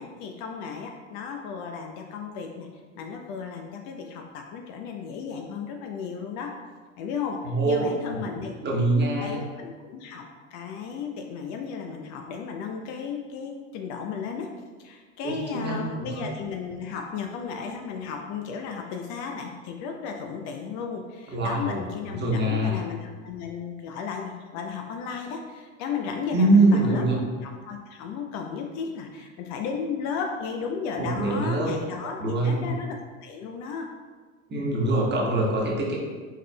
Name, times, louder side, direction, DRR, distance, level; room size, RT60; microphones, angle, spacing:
voice 1, 0.0-2.7 2.9-6.5 7.0-8.6 9.2-14.5 14.8-27.0 27.4-33.9, left 6 dB, 45° left, 3 dB, 0.5 m, -34 dB
voice 2, 7.4-7.8 8.6-9.4 15.2-16.3 21.3-21.8 22.1-22.8 26.3-27.2 31.0-31.7 32.2-32.7 34.5-36.0, right 2 dB, 25° right, -3 dB, 1.2 m, -23 dB
4.7 x 4.3 x 2.2 m, 1.4 s
hypercardioid pair, 75°, 40 cm